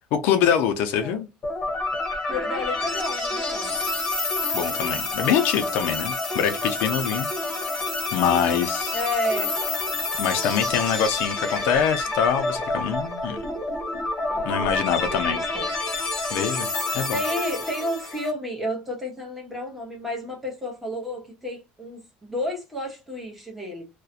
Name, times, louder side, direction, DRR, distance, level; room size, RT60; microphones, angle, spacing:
voice 1, 0.1-1.3 4.5-7.3 8.1-9.0 10.2-13.4 14.4-15.4 16.3-16.7 16.9-17.2, left 8 dB, 70° left, 0.4 m, -24 dB
sound 1, 1.4-18.3, left 2 dB, 25° left, 0.9 m, -28 dB
voice 2, 2.3-3.7 8.9-9.5 14.2-15.7 17.1-23.8, left 1 dB, 5° right, 0.9 m, -31 dB
2.4 x 2.1 x 2.6 m
cardioid pair, 140°, 3 cm